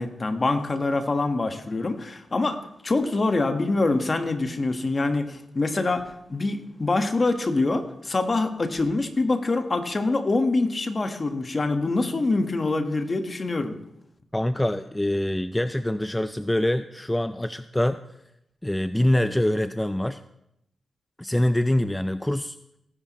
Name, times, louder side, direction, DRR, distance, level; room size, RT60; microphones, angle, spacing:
voice 1, 0.0-13.8, left 3 dB, 40° left, 7 dB, 1.4 m, -25 dB
voice 2, 14.3-18.0 18.6-20.2 21.2-22.6, left 1 dB, 10° left, 11 dB, 0.4 m, -24 dB
18.0 x 10.0 x 3.1 m, 0.80 s
cardioid pair, 55°, 0 cm